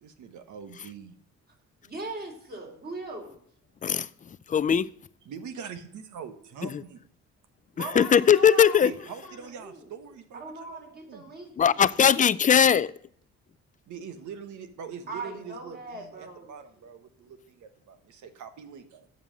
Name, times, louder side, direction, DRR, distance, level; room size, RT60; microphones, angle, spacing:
voice 1, 0.0-1.2 5.2-7.0 8.8-11.3 13.9-19.1, right 7 dB, 75° right, 1.3 m, -43 dB
voice 2, 1.8-3.4 7.7-9.9 10.3-12.2 15.1-16.6, right 2 dB, 30° right, 3.2 m, -40 dB
voice 3, 4.5-4.9 8.0-8.9 11.6-12.9, left 8 dB, 25° left, 0.4 m, -19 dB
7.4 x 5.4 x 7.4 m
cardioid pair, 90°, 30 cm